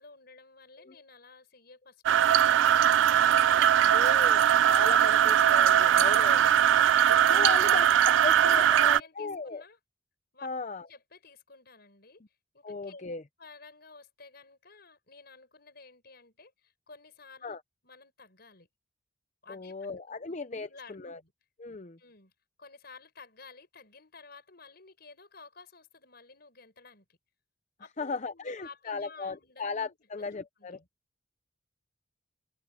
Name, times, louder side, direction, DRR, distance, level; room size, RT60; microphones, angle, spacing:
voice 1, 0.0-4.2 5.7-6.1 6.8-9.8 10.3-10.5 10.9-12.2 12.5-13.1 13.4-17.5 17.8-18.7 19.4-21.3 22.0-22.3 22.6-27.2 27.8-30.9, left 4 dB, 55° left, 6.0 m, -53 dB
sound 1, 2.1-9.0, right 10 dB, 70° right, 0.3 m, -21 dB
voice 2, 3.9-6.5 7.1-7.9 8.2-9.6 10.4-10.8 12.6-13.2 17.4-17.6 19.5-21.2 21.6-22.0 28.0-30.8, left 4 dB, 40° left, 0.6 m, -36 dB
head